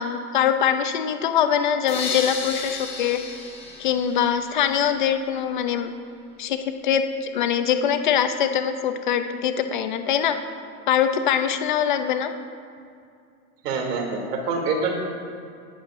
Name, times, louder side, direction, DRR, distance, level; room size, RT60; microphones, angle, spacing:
voice 1, 0.0-3.2 3.8-5.9 6.4-10.4 10.9-12.3, left 8 dB, 35° left, 8 dB, 0.4 m, -23 dB
sound 1, 1.9-4.9, left 4 dB, 10° left, 0.9 m, -33 dB
voice 2, 13.6-15.0, right 4 dB, 85° right, 1 dB, 2.8 m, -25 dB
18.5 x 11.5 x 2.5 m, 2.4 s
supercardioid pair, 175°, 46 cm